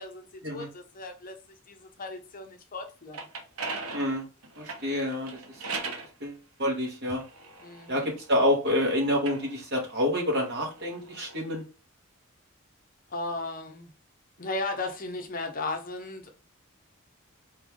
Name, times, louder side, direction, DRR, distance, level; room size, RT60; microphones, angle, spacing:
voice 1, 0.0-1.4 1.7-3.3 7.6-7.9 13.1-13.9 14.4-16.3, left 2 dB, 40° left, 0.8 m, -36 dB
sound 1, 2.9-6.1 6.9-8.6 9.1-11.4, right 3 dB, 90° right, 1.0 m, -40 dB
voice 2, 3.9-4.2 4.6-5.4 6.2-7.2 7.9-11.6, left 1 dB, 50° right, 1.9 m, -28 dB
4.2 x 3.4 x 3.6 m
head